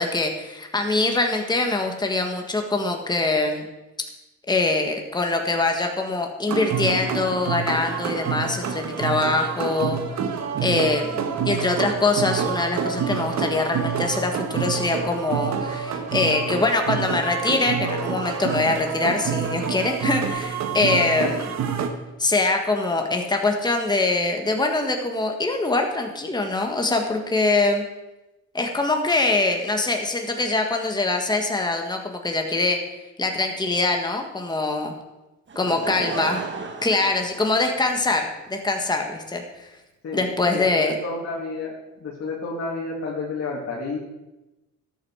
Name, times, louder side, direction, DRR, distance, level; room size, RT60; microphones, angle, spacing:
voice 1, 0.0-3.7 4.5-10.0 10.6-21.5 22.2-27.8 28.5-32.8 33.2-34.9 35.5-36.4 36.8-39.7 40.1-40.9, left 2 dB, 15° left, 3 dB, 1.7 m, -23 dB
sound 1, 6.5-21.9, right 6 dB, 65° right, 1.5 m, -27 dB
voice 2, 20.9-21.4 35.6-36.3 40.0-41.7 42.0-44.0, left 3 dB, 55° left, -3 dB, 2.7 m, -31 dB
Laughter / Crowd, 35.5-38.1 38.8-38.9, right 4 dB, 40° right, 1.8 m, -34 dB
13.0 x 9.1 x 4.9 m, 1.0 s
cardioid pair, 90°, 30 cm